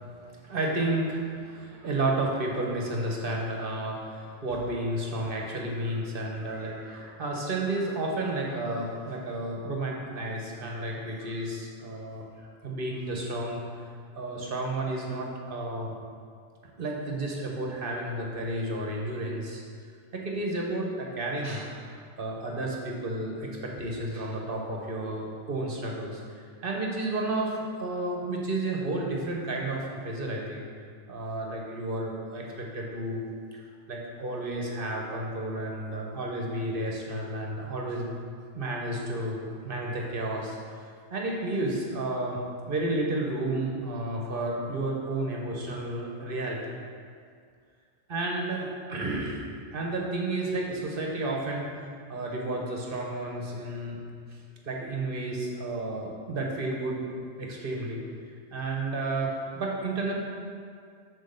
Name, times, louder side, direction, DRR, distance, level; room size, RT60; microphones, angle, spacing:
voice 1, 0.4-12.2 12.6-13.6 14.1-16.0 16.8-19.6 20.1-26.2 26.6-30.6 31.1-33.2 33.9-38.1 38.5-40.6 41.1-42.4 42.7-46.6 48.1-49.4 49.7-51.6 52.1-54.0 54.6-57.0 57.4-58.0 58.5-60.1, right 2 dB, 50° right, -1 dB, 1.3 m, -31 dB
6.3 x 4.6 x 6.6 m, 2.1 s
omnidirectional pair, 1.2 m